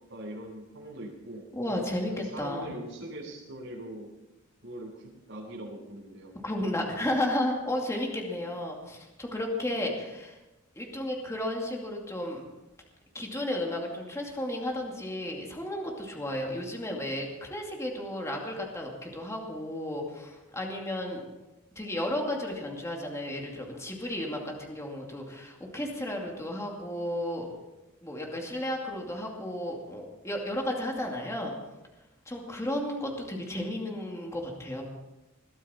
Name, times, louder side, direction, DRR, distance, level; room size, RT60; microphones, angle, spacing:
voice 1, 0.1-1.5 2.1-4.1 4.6-6.3, right 1 dB, 65° right, -9 dB, 6.9 m, -41 dB
voice 2, 1.5-2.7 6.4-10.4 10.8-12.4 13.1-21.2 21.8-27.5 28.0-31.5 32.3-34.8, left 1 dB, 15° left, 0 dB, 2.4 m, -33 dB
21.5 x 12.5 x 4.3 m, 1.0 s
head